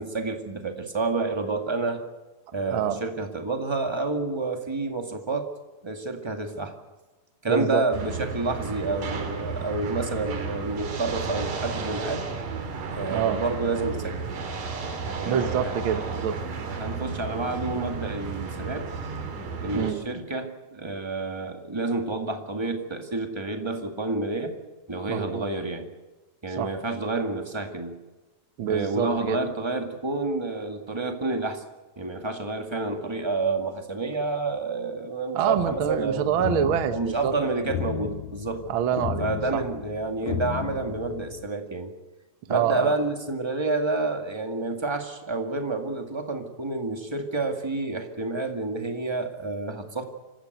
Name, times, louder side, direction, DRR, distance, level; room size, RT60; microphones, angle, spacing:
voice 1, 0.0-2.1 2.5-5.5 5.8-6.7 7.4-12.2 12.9-14.2 15.1-16.3 16.7-18.9 19.6-24.5 24.9-25.9 26.4-28.0 28.6-31.6 32.0-36.4 36.9-38.6 39.2-41.9 42.5-50.0, right 3 dB, 10° right, 5 dB, 1.2 m, -29 dB
voice 2, 2.7-3.0 7.5-7.8 13.1-13.4 15.2-16.4 19.7-20.0 25.1-25.5 26.6-26.7 28.6-29.4 35.3-37.3 38.7-39.6 42.5-43.0, right 8 dB, 55° right, 9 dB, 1.4 m, -26 dB
sound 1, 7.9-19.9, right 4 dB, 75° right, 4.0 m, -33 dB
sound 2, 35.6-41.5, left 9 dB, 70° left, 2.0 m, -35 dB
26.5 x 15.5 x 8.1 m, 1.2 s
omnidirectional pair, 3.8 m